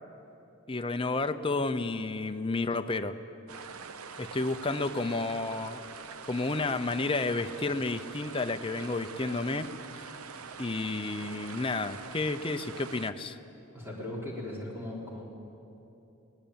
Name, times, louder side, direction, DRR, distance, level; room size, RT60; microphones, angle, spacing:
voice 1, 0.7-3.1 4.2-5.8 6.3-9.7 9.9-10.0 10.6-13.4, left 3 dB, 25° left, 8 dB, 0.7 m, -31 dB
sound 1, 3.5-13.1, right 5 dB, 90° right, 0.9 m, -44 dB
voice 2, 13.7-15.2, left 1 dB, 10° right, -3 dB, 4.5 m, -38 dB
22.0 x 18.5 x 8.8 m, 2.9 s
head